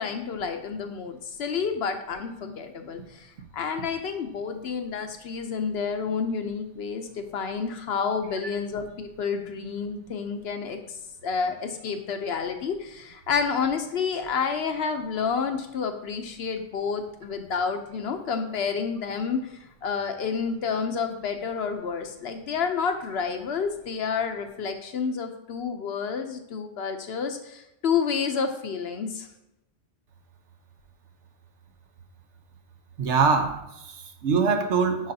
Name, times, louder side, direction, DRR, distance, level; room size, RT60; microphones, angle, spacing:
voice 1, 0.0-3.3 3.5-10.8 11.2-19.5 19.8-29.3, left 6 dB, 65° left, 6 dB, 0.8 m, -29 dB
voice 2, 33.0-35.1, right 5 dB, 75° right, 6 dB, 1.1 m, -24 dB
10.5 x 4.0 x 2.7 m, 0.87 s
omnidirectional pair, 1.2 m